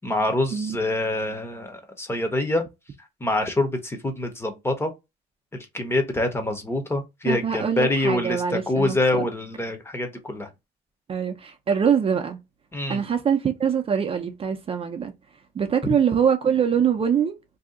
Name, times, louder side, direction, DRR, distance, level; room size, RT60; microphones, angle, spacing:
voice 1, 0.0-2.6 3.2-4.9 5.5-10.5 12.7-13.0, left 1 dB, 15° left, 0.8 m, -25 dB
voice 2, 7.3-9.3 11.1-12.4 12.9-15.1 15.5-17.4, right 7 dB, 35° right, 0.6 m, -23 dB
2.7 x 2.3 x 3.6 m
cardioid pair, 110°, 17 cm